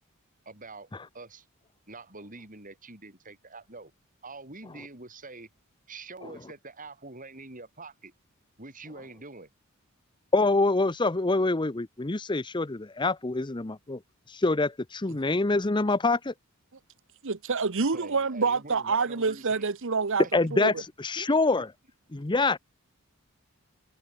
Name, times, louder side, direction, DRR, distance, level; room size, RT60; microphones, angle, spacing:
voice 1, 0.5-1.5 1.9-3.9 4.2-5.5 5.9-8.1 8.6-9.5 17.9-19.6 20.8-20.9 21.2-21.4, right 3 dB, 40° right, 5.5 m, -45 dB
voice 2, 10.3-14.0 14.3-16.3 20.3-20.7 21.0-21.7 22.1-22.6, left 3 dB, 20° left, 0.7 m, -25 dB
voice 3, 17.2-20.2 20.5-20.7, right 4 dB, 60° right, 1.0 m, -27 dB
head